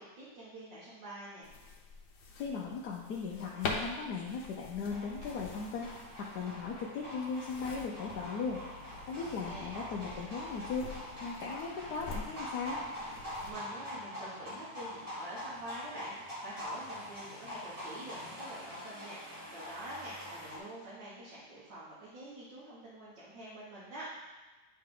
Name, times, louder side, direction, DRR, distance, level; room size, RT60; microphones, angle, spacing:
voice 1, 0.0-1.5 9.2-9.7 13.4-19.2 19.5-24.3, right 1 dB, 75° right, -10 dB, 2.1 m, -46 dB
sound 1, 1.4-13.5, left 3 dB, 85° left, 1.6 m, -45 dB
voice 2, 2.4-5.9 6.2-8.6 9.1-10.9 11.2-12.8, left 5 dB, 65° left, -4 dB, 1.2 m, -37 dB
sound 2, 4.9-20.6, left 1 dB, 30° right, 1.8 m, -44 dB
9.2 x 3.3 x 3.8 m, 1.3 s
omnidirectional pair, 2.0 m